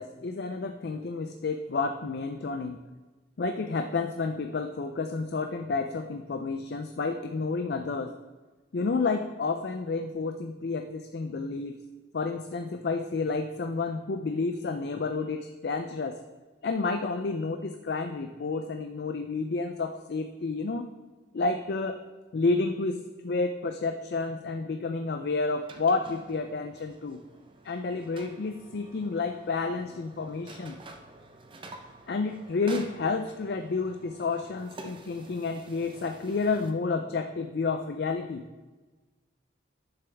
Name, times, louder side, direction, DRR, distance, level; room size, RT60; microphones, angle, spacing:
voice 1, 0.0-2.8 3.4-8.2 8.7-11.8 12.1-16.2 16.6-20.9 21.3-22.0 22.3-27.2 27.6-30.8 32.1-38.4, left 4 dB, 55° left, 6 dB, 0.4 m, -30 dB
sound 1, 25.5-36.7, right 2 dB, 25° right, 0.6 m, -49 dB
10.5 x 6.9 x 3.4 m, 1.2 s
head